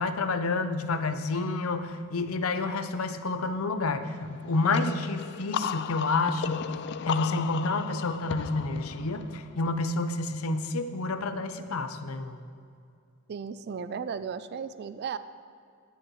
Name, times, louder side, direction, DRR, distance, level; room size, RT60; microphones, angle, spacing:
voice 1, 0.0-6.7 7.1-12.4, left 3 dB, 80° left, 9 dB, 0.7 m, -29 dB
sound 1, 4.7-10.3, left 8 dB, 55° left, 0.3 m, -36 dB
voice 2, 13.3-15.2, right 6 dB, 50° right, 13 dB, 0.3 m, -35 dB
15.0 x 10.0 x 3.2 m, 2.3 s
head